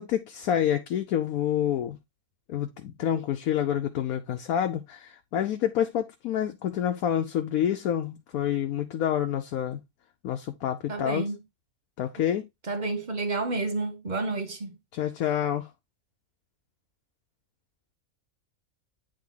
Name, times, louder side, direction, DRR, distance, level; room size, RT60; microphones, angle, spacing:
voice 1, 0.0-2.0 2.5-9.8 10.2-11.3 12.0-12.4 14.9-15.7, left 10 dB, 85° left, 1.1 m, -28 dB
voice 2, 10.9-11.4 12.7-14.7, right 3 dB, 35° right, 1.0 m, -30 dB
8.9 x 3.5 x 3.8 m
omnidirectional pair, 1.5 m